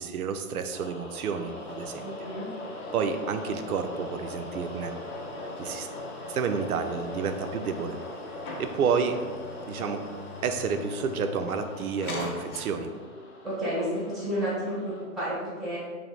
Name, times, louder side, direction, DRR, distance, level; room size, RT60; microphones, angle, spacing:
voice 1, 0.0-2.1 2.9-4.9 5.6-5.9 6.3-8.0 8.6-9.2 9.7-10.0 10.4-12.9, right 6 dB, 70° right, 7 dB, 0.5 m, -30 dB
sound 1, 0.7-15.1, left 1 dB, 45° left, 0.7 m, -46 dB
sound 2, 1.3-13.1, left 2 dB, 70° left, 0.9 m, -39 dB
voice 2, 2.0-2.5 13.4-15.8, equal, ahead, -12 dB, 0.4 m, -31 dB
3.3 x 2.6 x 3.9 m, 1.5 s
hypercardioid pair, 175°, 45 cm